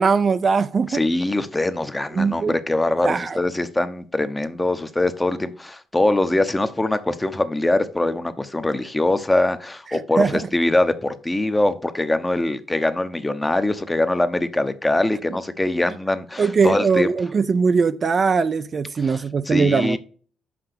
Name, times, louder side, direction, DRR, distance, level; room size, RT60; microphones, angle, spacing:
voice 1, 0.0-1.0 2.1-2.5 3.0-3.4 9.9-10.5 16.4-20.0, right 5 dB, 40° right, 0.5 m, -20 dB
voice 2, 0.9-17.1 19.5-20.0, left 2 dB, 15° left, 0.8 m, -22 dB
5.9 x 5.4 x 6.6 m
cardioid pair, 90°, 0 cm